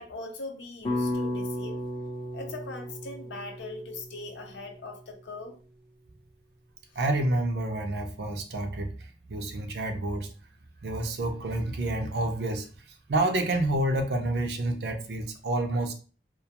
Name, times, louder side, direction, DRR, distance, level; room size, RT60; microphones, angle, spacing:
voice 1, 0.0-1.8 2.3-5.6, left 2 dB, 85° left, 4 dB, 0.6 m, -40 dB
sound 1, 0.9-5.1, left 1 dB, 30° left, 0.5 m, -34 dB
voice 2, 7.0-10.3 10.8-15.9, right 1 dB, 65° right, 5 dB, 0.5 m, -29 dB
2.4 x 2.2 x 2.8 m, 0.38 s
head